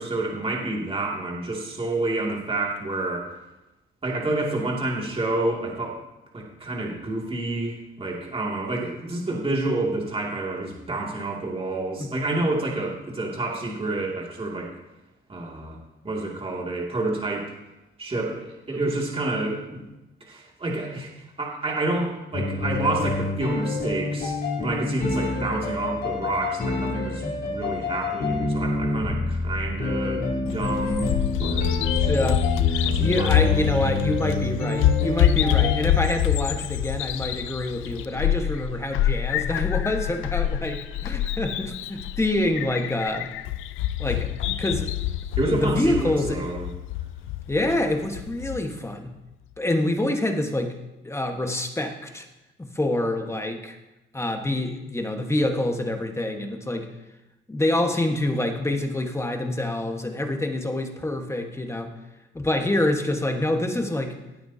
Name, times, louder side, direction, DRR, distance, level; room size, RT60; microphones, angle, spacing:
voice 1, 0.0-3.3 4.0-6.0 6.3-14.7 15.3-15.8 16.0-17.5 18.0-19.8 20.2-21.1 21.4-31.1 31.4-31.7 32.8-33.9 45.4-46.7, right 2 dB, 30° right, -2 dB, 2.6 m, -29 dB
sound 1, 22.3-35.9, left 2 dB, 55° left, 3.6 m, -27 dB
Bird vocalization bird call bird song, 30.5-48.6, left 11 dB, 90° left, 0.5 m, -26 dB
voice 2, 32.1-32.4 32.7-43.3 44.0-44.9 45.4-46.5 47.5-49.1 49.6-50.8 51.0-52.3 52.6-53.8 54.1-56.9 57.5-61.9 62.3-64.1, left 1 dB, 15° left, 3 dB, 1.5 m, -26 dB
17.5 x 8.7 x 2.9 m, 0.98 s
cardioid pair, 90°, 20 cm